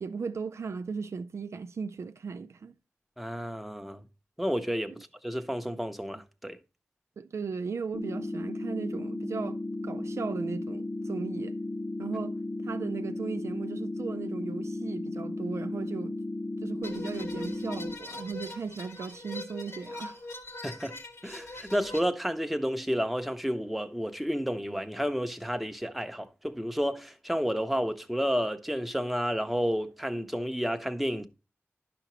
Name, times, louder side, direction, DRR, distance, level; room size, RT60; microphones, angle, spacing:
voice 1, 0.0-2.8 4.9-5.0 7.2-11.6 12.0-12.4 12.6-16.2 16.6-20.2, right 5 dB, 90° right, 0.4 m, -36 dB
voice 2, 3.2-4.0 4.4-6.6 20.6-21.0 21.2-31.3, equal, ahead, 0.7 m, -31 dB
sound 1, 7.9-17.9, left 2 dB, 50° left, 0.8 m, -35 dB
sound 2, 16.8-22.0, left 2 dB, 70° left, 1.5 m, -42 dB
10.5 x 5.9 x 3.0 m
wide cardioid pair, 70°, 5 cm